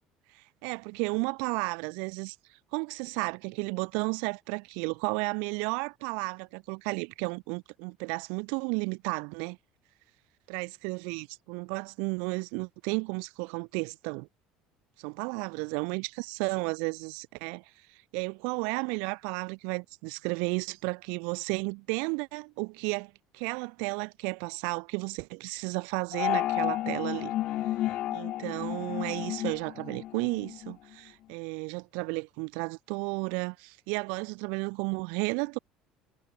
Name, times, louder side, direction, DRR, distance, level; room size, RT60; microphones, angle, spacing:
voice 1, 0.3-2.4 2.7-9.6 10.5-14.3 15.0-17.6 17.9-27.3 28.1-35.6, right 36 dB, 80° right, 1.8 m, -33 dB
sound 1, 26.1-30.7, left 14 dB, 45° left, 1.3 m, -32 dB
cardioid pair, 170°, 2 cm